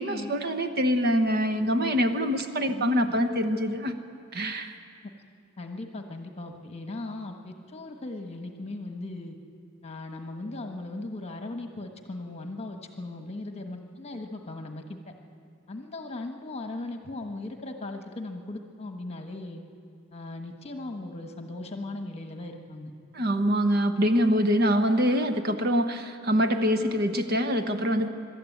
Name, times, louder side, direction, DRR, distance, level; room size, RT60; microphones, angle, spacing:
voice 1, 0.0-3.9 4.3-4.8 23.1-28.1, equal, 50° right, 7 dB, 1.0 m, -25 dB
voice 2, 2.7-3.1 5.0-5.1 5.6-9.4 9.8-15.1 15.7-19.6 20.1-22.9, left 2 dB, 30° left, 4 dB, 1.3 m, -38 dB
23.5 x 13.0 x 9.2 m, 2.4 s
head